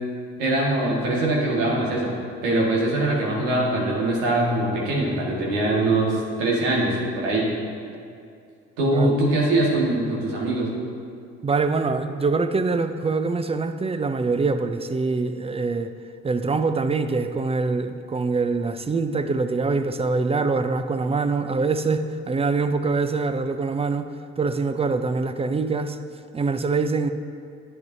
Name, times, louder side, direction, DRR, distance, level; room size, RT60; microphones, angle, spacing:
voice 1, 0.4-2.1 2.4-7.5 8.8-10.7, right 2 dB, 85° right, -4 dB, 1.8 m, -22 dB
voice 2, 8.8-9.1 11.4-15.9 16.2-24.1 24.4-26.0 26.3-27.1, right 4 dB, 20° right, 9 dB, 0.5 m, -24 dB
10.5 x 7.8 x 2.7 m, 2.4 s
hypercardioid pair, 60°, 31 cm